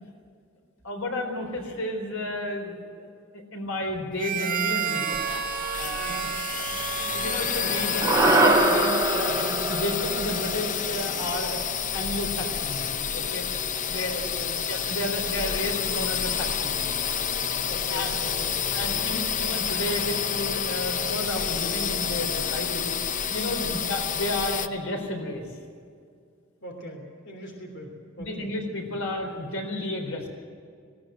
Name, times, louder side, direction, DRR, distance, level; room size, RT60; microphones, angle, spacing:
voice 1, 0.8-5.2 5.8-6.2 6.6-6.8 7.1-11.6 11.9-12.9 13.1-13.4 13.9-14.2 14.7-16.9 17.9-18.2 18.7-22.9 23.3-25.4 28.2-30.3, left 1 dB, 90° left, 3 dB, 4.2 m, -32 dB
Harmonica, 4.2-9.2, right 7 dB, 40° right, 1.8 m, -32 dB
sound 1, 5.1-24.7, left 7 dB, 40° left, 0.7 m, -29 dB
voice 2, 5.9-6.4 14.1-14.6 17.6-19.5 23.5-23.9 26.6-28.5 28.8-29.0, equal, 60° left, 2 dB, 3.3 m, -42 dB
sound 2, 8.0-12.5, right 2 dB, 15° right, 2.1 m, -24 dB
19.5 x 17.5 x 7.7 m, 2.2 s
head